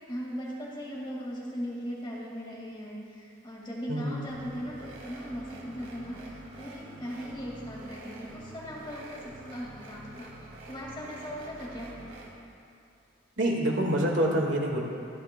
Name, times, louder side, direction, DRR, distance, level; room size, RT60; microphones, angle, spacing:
voice 1, 0.1-10.3 10.7-12.0, equal, 25° left, -4 dB, 1.9 m, -38 dB
voice 2, 3.9-4.3 13.4-14.8, right 1 dB, 70° right, -1 dB, 1.8 m, -26 dB
sound 1, 4.3-12.3, right 1 dB, 85° right, 1.9 m, -47 dB
25.0 x 9.2 x 2.2 m, 2.5 s
head